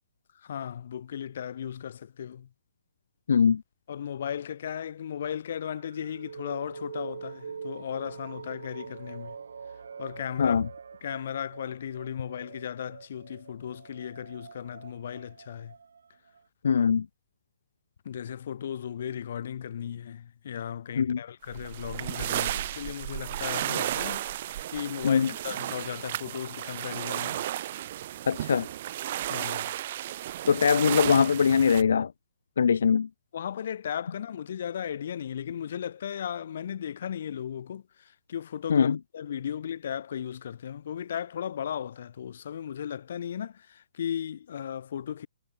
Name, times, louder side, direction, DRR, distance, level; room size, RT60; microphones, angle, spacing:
voice 1, 0.3-2.5 3.9-9.4 10.0-10.6 11.0-15.7 18.1-24.3 24.7-27.5 29.3-29.7 33.3-45.3, left 9 dB, 40° left, 3.5 m, -36 dB
voice 2, 3.3-3.6 10.4-10.7 16.6-17.1 21.0-21.2 25.0-25.3 28.3-28.7 30.5-32.1 32.6-33.1 38.7-39.0, left 6 dB, 60° left, 1.0 m, -22 dB
sound 1, 5.6-16.4, right 6 dB, 75° right, 3.2 m, -44 dB
sound 2, 21.5-31.8, right 13 dB, 30° right, 0.6 m, -33 dB
hypercardioid pair, 180°, 0 cm